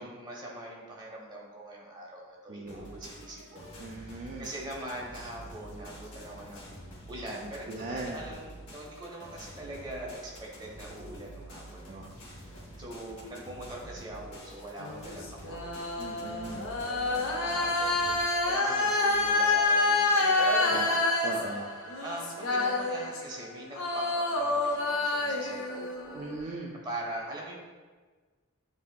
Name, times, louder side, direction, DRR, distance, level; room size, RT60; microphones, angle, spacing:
voice 1, 0.0-3.7 4.0-16.0 16.8-21.2 22.0-26.3 26.8-27.6, right 1 dB, 20° right, -3 dB, 0.8 m, -42 dB
voice 2, 2.5-2.9 3.8-4.5 7.4-8.2 11.8-12.1 16.0-16.7 20.7-20.8 21.2-21.7 26.1-26.7, right 2 dB, 35° right, -2 dB, 0.3 m, -39 dB
sound 1, 2.7-19.3, right 1 dB, 85° left, 1.1 m, -47 dB
sound 2, 14.8-23.5 23.8-26.4, left 2 dB, 65° left, 0.7 m, -28 dB
7.9 x 2.7 x 2.2 m, 1.4 s
head